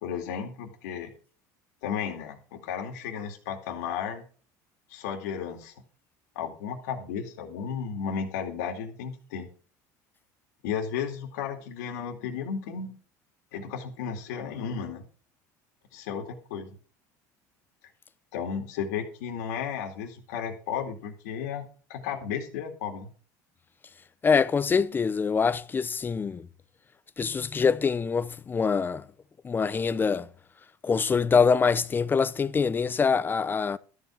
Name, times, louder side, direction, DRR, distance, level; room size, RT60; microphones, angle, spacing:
voice 1, 0.0-1.1 1.8-4.2 4.9-5.7 6.4-9.5 10.6-12.9 13.5-15.0 15.9-16.7 18.3-21.6 21.9-23.1, left 7 dB, 85° left, 2.4 m, -34 dB
voice 2, 24.2-26.5 27.2-29.0 29.4-30.3 30.8-33.8, left 5 dB, 20° left, 0.7 m, -24 dB
13.0 x 5.4 x 7.2 m
supercardioid pair, 115°, 9 cm